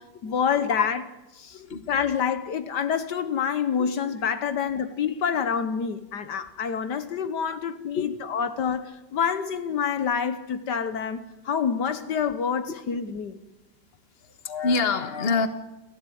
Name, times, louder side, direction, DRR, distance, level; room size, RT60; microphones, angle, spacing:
voice 1, 0.2-1.0 1.3-1.6 1.9-13.4, left 7 dB, 70° left, 1.6 m, -27 dB
voice 2, 1.5-1.9 3.8-3.9 7.5-7.6 7.9-8.1 14.2-15.5, left 4 dB, 35° left, 1.6 m, -26 dB
29.0 x 13.5 x 9.3 m
omnidirectional pair, 1.9 m